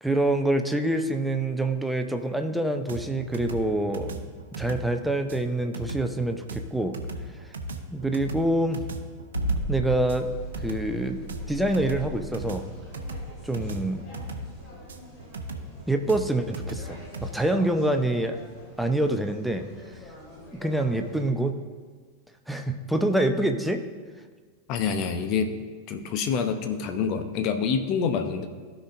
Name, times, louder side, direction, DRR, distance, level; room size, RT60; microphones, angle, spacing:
voice 1, 0.0-4.1 4.5-7.0 7.3-7.4 7.9-8.8 9.7-10.3 10.6-11.2 11.5-12.6 13.4-14.1 15.9-18.4 18.8-20.0 20.6-21.6 22.5-23.8, right 1 dB, ahead, 6 dB, 0.6 m, -26 dB
sound 1, 2.9-17.3, right 2 dB, 65° right, 0.7 m, -37 dB
sound 2, 9.3-15.5, right 2 dB, 85° left, 0.9 m, -34 dB
sound 3, 9.9-21.2, left 2 dB, 25° left, 2.4 m, -47 dB
voice 2, 24.7-25.5 25.9-28.5, left 6 dB, 40° left, 7 dB, 0.8 m, -27 dB
15.5 x 5.2 x 2.6 m, 1.5 s
figure-of-eight pair, 90°, 0 cm